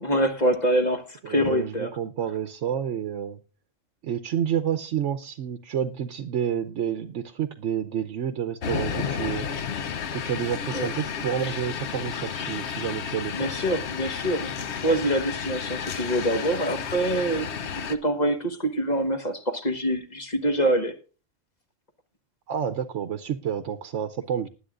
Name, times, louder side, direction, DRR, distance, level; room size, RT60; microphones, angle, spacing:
voice 1, 0.0-1.9 10.7-10.9 13.3-20.9, right 1 dB, 35° left, 1.5 m, -25 dB
voice 2, 1.2-3.4 4.0-9.5 10.1-13.5 22.5-24.5, right 9 dB, 75° right, 1.1 m, -29 dB
sound 1, 8.6-18.0, left 7 dB, 65° left, 1.2 m, -32 dB
19.5 x 10.5 x 2.5 m
omnidirectional pair, 1.3 m